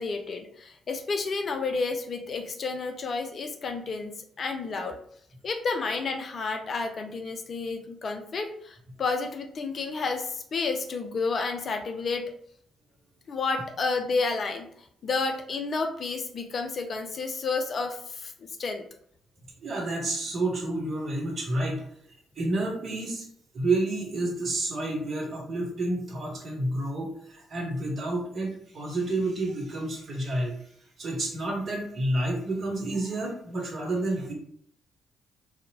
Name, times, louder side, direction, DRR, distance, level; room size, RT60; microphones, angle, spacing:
voice 1, 0.0-5.0 5.4-12.3 13.3-14.7 15.0-18.8, left 4 dB, 45° left, 5 dB, 0.4 m, -31 dB
voice 2, 19.6-21.8 22.4-23.3 23.5-30.6 31.0-34.3, right 2 dB, 50° right, -1 dB, 0.8 m, -29 dB
2.6 x 2.0 x 2.8 m, 0.65 s
figure-of-eight pair, 40°, 0 cm